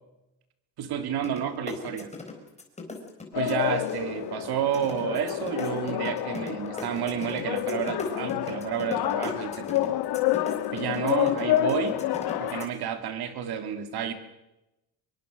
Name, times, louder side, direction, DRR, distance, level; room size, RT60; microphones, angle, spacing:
voice 1, 0.8-2.1 3.3-10.0 10.7-12.0 12.4-14.1, right 8 dB, 60° right, 8 dB, 3.0 m, -30 dB
sound 1, 1.2-1.4 1.7-4.3 4.7-12.6, left 3 dB, 15° left, 4.4 m, -38 dB
sound 2, 3.3-12.7, left 13 dB, 60° left, 1.6 m, -29 dB
25.0 x 22.5 x 6.8 m, 0.95 s
cardioid pair, 140°, 43 cm